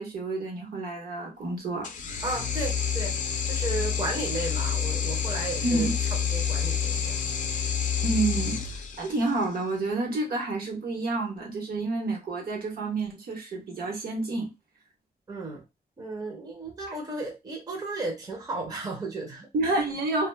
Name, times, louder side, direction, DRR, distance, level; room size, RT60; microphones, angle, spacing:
voice 1, 0.0-1.9 5.6-6.0 8.0-14.5 16.9-17.0 19.5-20.3, right 2 dB, 70° right, 1.0 m, -29 dB
sound 1, 1.8-9.4, left 7 dB, 55° left, 0.4 m, -28 dB
voice 2, 2.2-5.9 6.3-7.2 15.3-15.6 16.0-19.5, right 2 dB, 25° right, 0.6 m, -34 dB
2.2 x 2.1 x 3.2 m
wide cardioid pair, 160°, 16 cm